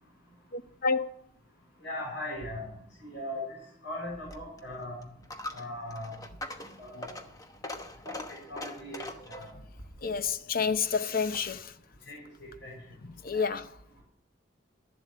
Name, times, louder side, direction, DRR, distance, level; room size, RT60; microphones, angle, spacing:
voice 1, 0.5-1.1 10.0-11.8 13.0-13.8, left 5 dB, 50° left, 0.7 m, -29 dB
voice 2, 1.8-2.7 3.0-3.4 3.8-5.0 5.5-6.1 6.8-7.1 8.0-8.2 8.5-9.0 9.3-9.5 12.1-12.2 12.6-12.8 13.3-13.5, left 1 dB, 70° left, 5.7 m, -38 dB
Coin (dropping), 4.1-11.6, left 1 dB, 20° left, 1.0 m, -43 dB
12.5 x 7.6 x 8.1 m
head